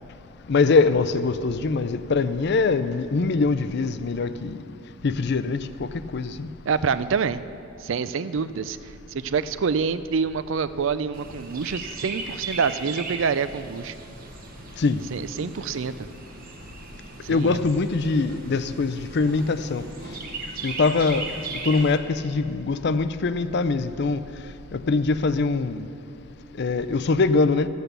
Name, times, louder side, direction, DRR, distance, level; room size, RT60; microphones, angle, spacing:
voice 1, 0.5-4.5 5.0-5.7 6.1-6.5 14.8-15.0 17.3-19.8 20.6-21.3 21.6-24.2 24.7-25.8 26.6-27.7, left 4 dB, 55° left, 13 dB, 0.4 m, -23 dB
voice 2, 6.7-7.4 7.8-8.8 9.1-13.9 15.1-15.9 17.2-17.6, right 5 dB, 65° right, 14 dB, 0.4 m, -26 dB
Chirp tweet, 11.1-22.0, right 3 dB, 45° right, 1.1 m, -38 dB
15.0 x 8.0 x 6.8 m, 2.9 s
head